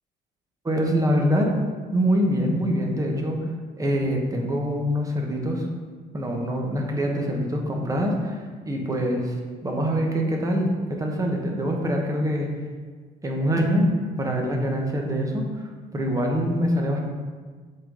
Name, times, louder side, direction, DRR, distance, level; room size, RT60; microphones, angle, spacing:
voice 1, 0.6-1.6 1.9-3.4 3.8-5.7 6.1-9.4 9.6-12.5 13.2-13.9 14.2-15.5 15.9-17.0, equal, 20° right, 1 dB, 1.1 m, -24 dB
7.8 x 3.8 x 3.8 m, 1.5 s
cardioid pair, 110°, 17 cm